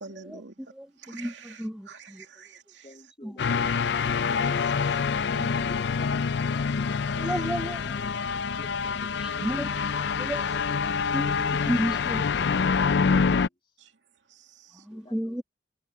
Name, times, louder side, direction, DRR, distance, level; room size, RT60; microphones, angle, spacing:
voice 1, 0.0-0.6 1.0-3.0 4.6-4.7 5.2-5.7 13.8-14.0 14.3-14.9, right 4 dB, 85° right, 2.5 m, -47 dB
voice 2, 0.7-2.2 3.2-3.3 5.3-6.2 6.7-8.0 9.2-12.3 14.8-15.4, equal, 5° right, 0.7 m, -34 dB
voice 3, 2.8-3.6 7.8-9.8 11.5-12.0 12.4-13.8 14.9-15.4, left 1 dB, 30° left, 3.3 m, -50 dB
sound 1, 3.4-13.5, left 5 dB, 70° left, 0.4 m, -26 dB
head